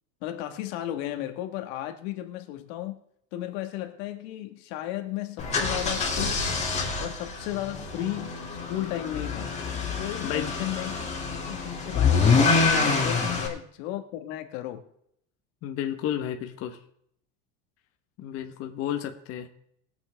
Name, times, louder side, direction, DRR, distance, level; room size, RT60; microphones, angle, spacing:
voice 1, 0.2-3.0 3.3-6.5 7.0-9.5 10.0-10.9 11.4-14.8, left 13 dB, 80° left, 1.8 m, -34 dB
sound 1, 5.4-13.5, left 4 dB, 20° left, 2.7 m, -26 dB
voice 2, 10.2-10.5 13.3-13.4 15.6-16.8 18.2-19.5, left 10 dB, 45° left, 1.4 m, -32 dB
22.0 x 7.8 x 3.6 m
cardioid pair, 155°, 31 cm